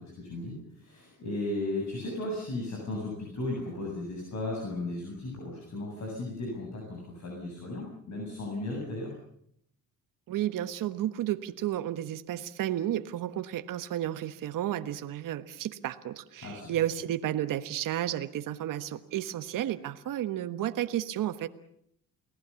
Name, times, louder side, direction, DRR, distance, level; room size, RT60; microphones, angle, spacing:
voice 1, 0.0-9.1 16.4-16.7, left 2 dB, 55° left, 0 dB, 7.8 m, -35 dB
voice 2, 10.3-21.5, right 12 dB, 70° right, 10 dB, 1.4 m, -32 dB
29.5 x 19.0 x 7.1 m, 0.71 s
cardioid pair, 100°, 34 cm